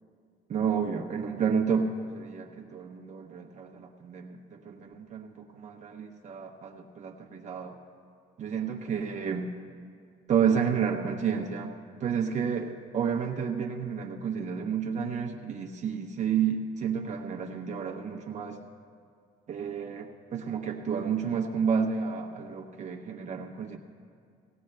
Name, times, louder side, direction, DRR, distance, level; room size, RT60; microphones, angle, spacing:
voice 1, 0.5-7.8 8.4-9.5 10.3-11.7 12.0-18.6 19.5-23.8, right 7 dB, 45° right, 1 dB, 0.8 m, -30 dB
17.5 x 17.5 x 2.2 m, 2.3 s
cardioid pair, 110°, 17 cm